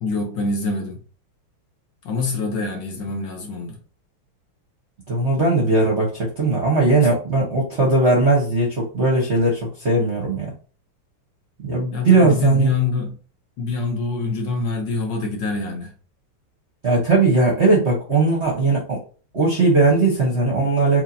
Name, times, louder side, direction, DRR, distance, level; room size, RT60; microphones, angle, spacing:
voice 1, 0.0-1.0 2.0-3.8 11.9-13.2 13.6-15.9, left 4 dB, 65° left, 1.4 m, -25 dB
voice 2, 5.1-10.5 11.6-12.7 16.8-19.0 19.3-21.0, right 3 dB, 45° right, 0.9 m, -18 dB
4.5 x 2.9 x 2.6 m
omnidirectional pair, 2.4 m